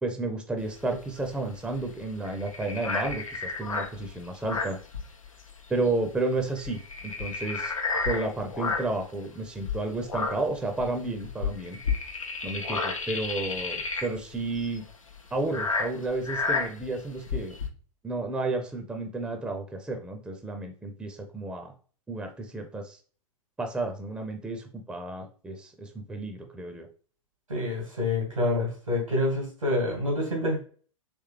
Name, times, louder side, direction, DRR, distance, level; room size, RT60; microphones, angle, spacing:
voice 1, 0.0-4.8 5.7-7.7 8.1-11.8 12.4-14.8 15.3-17.6 18.0-21.7 22.1-23.0 23.6-26.9, right 2 dB, 5° right, 5 dB, 0.5 m, -32 dB
sound 1, 0.6-5.6 5.8-6.0 6.4-9.1 9.6-17.7, left 4 dB, 85° left, 0.6 m, -32 dB
voice 2, 27.5-30.6, left 2 dB, 85° right, -1 dB, 1.7 m, -27 dB
3.4 x 3.2 x 3.2 m, 0.41 s
figure-of-eight pair, 95°, 17 cm